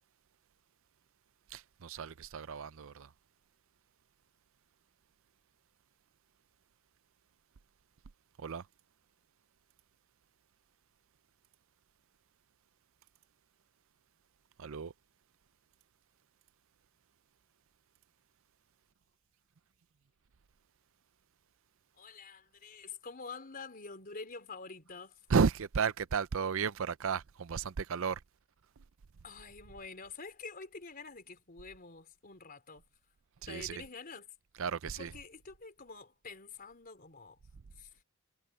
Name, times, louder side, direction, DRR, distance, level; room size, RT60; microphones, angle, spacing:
voice 1, 1.5-3.1 8.4-8.6 14.6-14.9 25.3-28.2 33.4-33.8 34.6-35.1, right 6 dB, 65° right, 0.5 m, -33 dB
voice 2, 21.9-25.2 29.2-32.8 33.5-34.3 35.0-37.4 37.8-37.9, left 4 dB, 40° left, 3.9 m, -47 dB
head